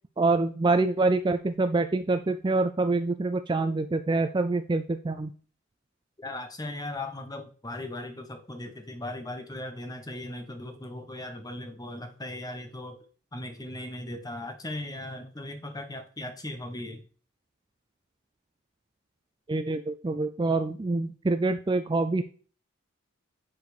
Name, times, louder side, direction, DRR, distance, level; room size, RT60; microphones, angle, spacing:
voice 1, 0.2-5.3 19.5-22.2, right 3 dB, 20° right, 8 dB, 0.3 m, -26 dB
voice 2, 6.2-13.0 13.3-17.0, left 1 dB, 15° left, 7 dB, 1.0 m, -38 dB
9.5 x 4.2 x 4.9 m, 0.40 s
head